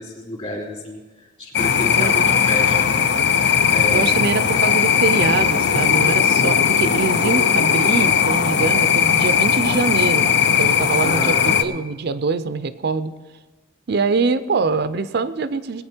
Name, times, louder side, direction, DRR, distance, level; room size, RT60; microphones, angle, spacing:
voice 1, 0.0-3.4 3.7-4.2 11.0-12.0, left 1 dB, 35° left, -1 dB, 2.9 m, -31 dB
sound 1, 1.5-11.6, left 7 dB, 60° left, 0.6 m, -18 dB
voice 2, 2.0-2.3 3.9-13.1 13.9-15.8, right 4 dB, 60° right, 13 dB, 0.5 m, -24 dB
19.5 x 8.5 x 4.4 m, 1.2 s
head